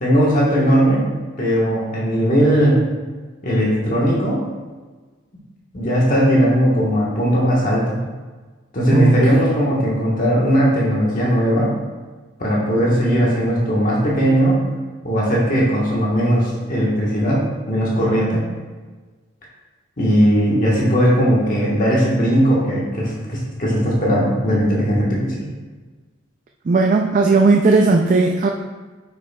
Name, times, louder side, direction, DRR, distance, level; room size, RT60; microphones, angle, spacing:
voice 1, 0.0-2.9 3.4-4.4 5.7-8.1 8.7-11.8 12.4-14.6 15.0-18.4 20.0-25.4, equal, 40° left, -5 dB, 1.3 m, -18 dB
voice 2, 26.7-28.5, right 3 dB, 40° right, 2 dB, 0.3 m, -15 dB
8.7 x 6.2 x 2.3 m, 1.3 s
head